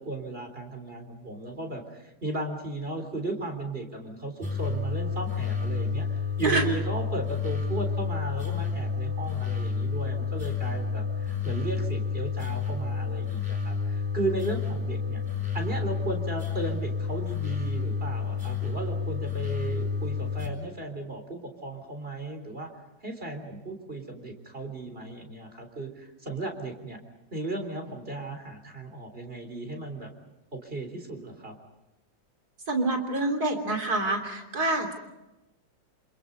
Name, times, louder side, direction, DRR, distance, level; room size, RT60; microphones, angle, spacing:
voice 1, 0.0-15.2 15.5-22.7 23.0-27.0 27.3-30.1 30.5-31.6, right 2 dB, 30° right, 4 dB, 4.2 m, -35 dB
sound 1, 4.4-20.5, left 5 dB, 10° right, 6.0 m, -30 dB
voice 2, 32.7-34.9, right 2 dB, 55° right, 5 dB, 3.8 m, -26 dB
28.0 x 27.5 x 5.4 m, 0.98 s
omnidirectional pair, 2.0 m